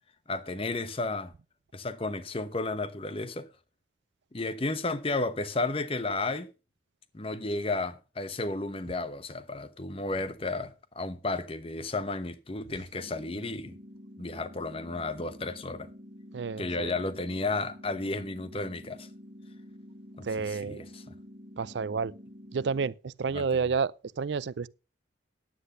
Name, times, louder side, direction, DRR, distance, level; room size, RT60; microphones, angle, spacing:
voice 1, 0.3-1.3 1.7-3.5 4.3-6.5 7.1-13.8 14.2-15.9 16.6-19.1 20.2-21.0 23.3-23.6, left 2 dB, 30° left, 0.9 m, -33 dB
sound 1, 12.9-22.9, equal, 35° right, 1.4 m, -49 dB
voice 2, 16.3-16.9 20.2-20.8 21.6-22.1 22.5-24.7, right 5 dB, 65° right, 0.4 m, -30 dB
10.0 x 8.2 x 5.4 m
head